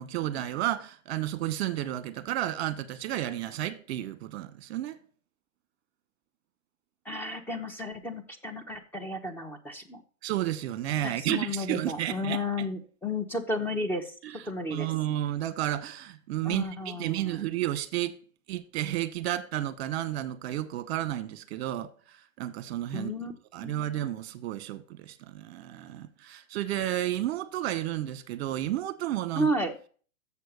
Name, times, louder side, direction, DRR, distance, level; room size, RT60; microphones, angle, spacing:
voice 1, 0.0-5.0 10.2-12.4 14.2-14.4 14.7-18.2 18.5-23.1 23.5-29.5, right 13 dB, 50° right, 1.1 m, -32 dB
voice 2, 7.0-10.0 11.0-14.1 14.5-14.9 16.4-17.5 22.9-23.3 23.6-23.8 29.4-29.8, left 1 dB, 5° left, 0.9 m, -33 dB
7.1 x 6.7 x 6.6 m
hypercardioid pair, 135°, 41 cm